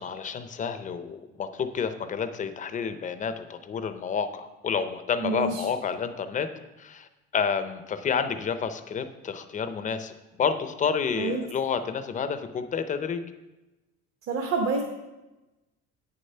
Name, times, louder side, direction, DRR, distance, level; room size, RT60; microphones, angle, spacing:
voice 1, 0.0-6.5 6.8-13.2, left 6 dB, 25° left, 10 dB, 0.5 m, -30 dB
voice 2, 5.2-5.6 11.2-11.4 14.3-14.8, right 3 dB, 50° right, 1 dB, 1.0 m, -27 dB
9.1 x 6.7 x 5.4 m, 1.0 s
cardioid pair, 165°, 29 cm